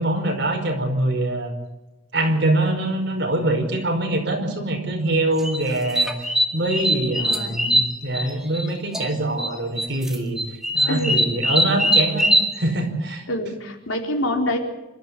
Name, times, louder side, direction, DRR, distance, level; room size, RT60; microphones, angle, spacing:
voice 1, 0.0-1.5 2.1-6.1 6.5-10.4 10.7-13.2, right 1 dB, 55° right, 3 dB, 5.1 m, -24 dB
sound 1, 5.4-8.7 8.9-9.5 9.8-12.5, right 1 dB, ahead, 2.1 m, -21 dB
voice 2, 7.1-7.6 10.9-11.5 13.3-14.6, left 1 dB, 85° left, 1 dB, 4.4 m, -26 dB
26.0 x 13.5 x 8.5 m, 1.1 s
head